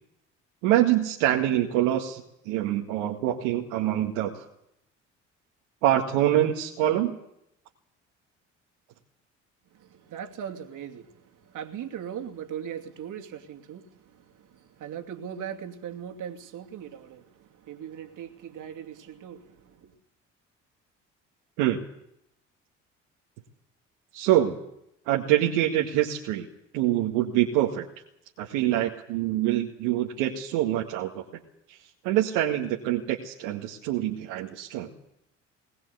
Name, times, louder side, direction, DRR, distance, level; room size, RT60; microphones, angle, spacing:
voice 1, 0.6-4.4 5.8-7.2 21.6-21.8 24.1-24.6 25.1-26.5 26.7-27.9 28.4-31.2 31.7-31.8 32.0-34.9, right 12 dB, 75° right, 2.0 m, -25 dB
voice 2, 9.7-19.9, right 8 dB, 55° right, 2.7 m, -39 dB
21.0 x 19.0 x 8.1 m
hypercardioid pair, 55°, 36 cm